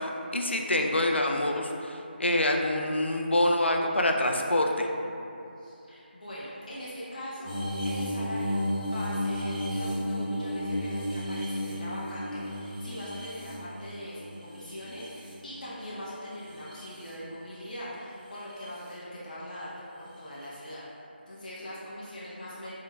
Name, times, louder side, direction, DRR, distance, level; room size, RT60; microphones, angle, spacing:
voice 1, 0.0-4.9, left 1 dB, 90° left, 2 dB, 0.4 m, -26 dB
voice 2, 5.6-7.5 7.8-20.8 21.3-22.7, equal, 45° left, -9 dB, 0.7 m, -41 dB
sound 1, 7.4-15.8 16.3-17.1 18.3-18.6 20.4-20.5, left 1 dB, 5° right, 0.8 m, -33 dB
3.6 x 3.5 x 2.2 m, 2.8 s
figure-of-eight pair, 160°, 6 cm